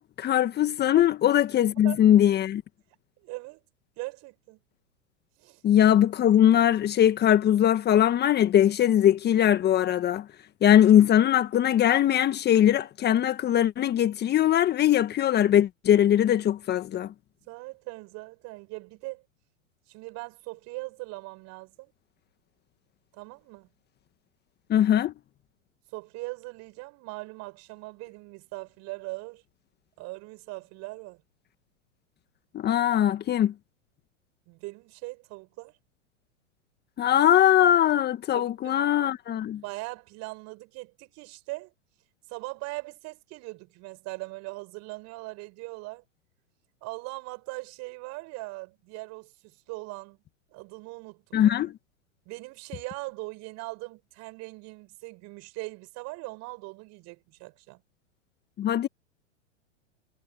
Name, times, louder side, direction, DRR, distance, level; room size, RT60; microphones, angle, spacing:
voice 1, 0.0-2.6 5.6-10.2 10.6-17.1 24.7-25.1 32.5-33.5 37.0-39.6 51.3-51.7 58.6-58.9, left 11 dB, 25° left, 1.6 m, -21 dB
voice 2, 3.2-3.6 4.0-4.6 5.4-5.6 17.5-19.2 19.9-21.9 23.1-23.7 25.9-29.4 30.0-31.2 34.5-35.7 38.3-38.8 39.6-41.7 42.3-46.0 46.8-50.2 50.5-51.5 52.3-57.8, right 24 dB, 45° right, 6.3 m, -40 dB
hypercardioid pair, 110°, 39 cm